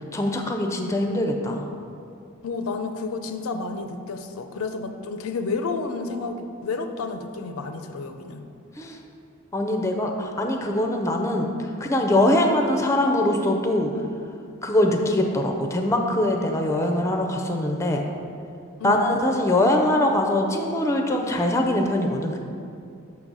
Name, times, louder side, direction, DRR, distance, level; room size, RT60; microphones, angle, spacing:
voice 1, 0.1-1.6 8.8-9.0 9.5-13.9 14.6-18.0 18.8-22.4, left 1 dB, 15° left, 2 dB, 0.4 m, -22 dB
voice 2, 2.4-8.4 18.8-19.1, left 4 dB, 85° left, 7 dB, 0.5 m, -30 dB
5.8 x 3.9 x 6.1 m, 2.5 s
head